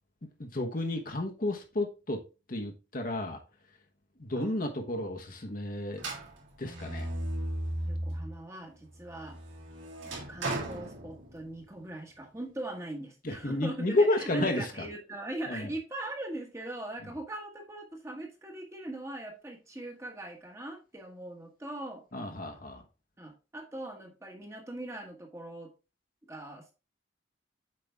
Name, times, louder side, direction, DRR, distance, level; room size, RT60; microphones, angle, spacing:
voice 1, 0.4-2.2 2.5-3.4 4.2-6.0 6.6-7.1 13.2-14.9 15.5-15.7 22.1-22.8, left 2 dB, 45° left, 1.1 m, -31 dB
sound 1, 6.0-8.4 8.8-11.7, right 1 dB, 75° right, 3.2 m, -36 dB
voice 2, 7.8-9.4 10.0-22.0 23.2-25.7 26.3-26.7, right 1 dB, 15° right, 1.3 m, -41 dB
7.8 x 5.0 x 3.4 m
head